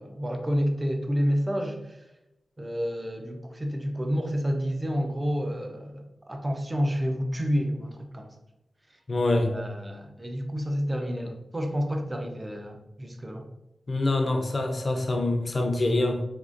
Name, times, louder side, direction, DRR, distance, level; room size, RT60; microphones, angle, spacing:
voice 1, 0.0-2.0 2.6-8.3 9.5-13.5, equal, 20° right, 4 dB, 0.5 m, -29 dB
voice 2, 9.1-9.6 13.9-16.2, left 2 dB, 45° left, 3 dB, 0.5 m, -25 dB
3.7 x 2.4 x 2.5 m, 0.90 s
cardioid pair, 65°, 0 cm